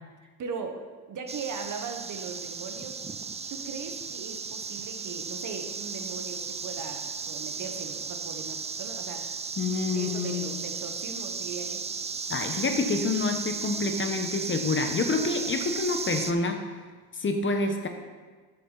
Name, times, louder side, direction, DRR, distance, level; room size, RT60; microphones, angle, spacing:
voice 1, 0.4-3.0 3.5-9.3 9.9-11.8, right 5 dB, 50° right, 5 dB, 1.4 m, -39 dB
sound 1, 1.3-16.3, right 5 dB, 15° right, 0.4 m, -35 dB
voice 2, 9.6-10.6 12.3-16.6 17.2-17.9, left 3 dB, 30° left, 5 dB, 1.1 m, -27 dB
12.5 x 6.8 x 4.1 m, 1.4 s
cardioid pair, 95°, 39 cm